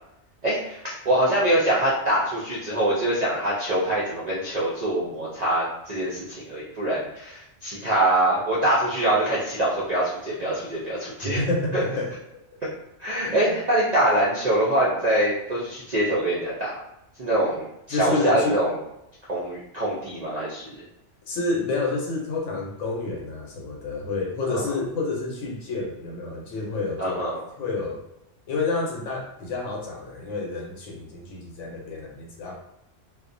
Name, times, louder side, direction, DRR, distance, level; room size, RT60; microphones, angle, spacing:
voice 1, 0.4-11.4 11.7-11.8 13.0-16.8 17.2-18.8 19.3-20.9 24.5-24.8 27.0-27.4, right 1 dB, 65° right, -7 dB, 0.4 m, -24 dB
voice 2, 11.2-12.1 13.2-13.4 17.9-18.6 21.3-27.3 27.6-28.0 28.5-32.5, left 3 dB, 80° left, -1 dB, 1.0 m, -29 dB
2.4 x 2.0 x 2.5 m, 0.83 s
omnidirectional pair, 1.3 m